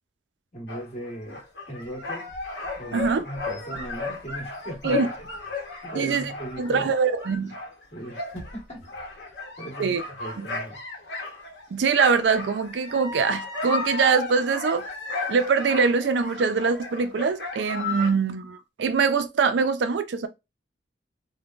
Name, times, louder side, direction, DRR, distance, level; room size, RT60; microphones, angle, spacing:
voice 1, 0.5-1.4 1.7-2.2 2.7-5.3 5.8-6.9 7.9-8.9 9.2-9.3 9.6-10.8, right 1 dB, 35° left, 1.4 m, -38 dB
sound 1, 0.7-11.7 12.0-18.1, left 3 dB, 70° left, 0.9 m, -34 dB
voice 2, 2.9-3.2 4.8-5.1 5.9-6.3 6.6-7.5 9.8-10.0 10.4-10.5 11.7-14.9 15.3-20.3, right 5 dB, 80° right, 0.4 m, -23 dB
3.5 x 2.1 x 2.4 m
head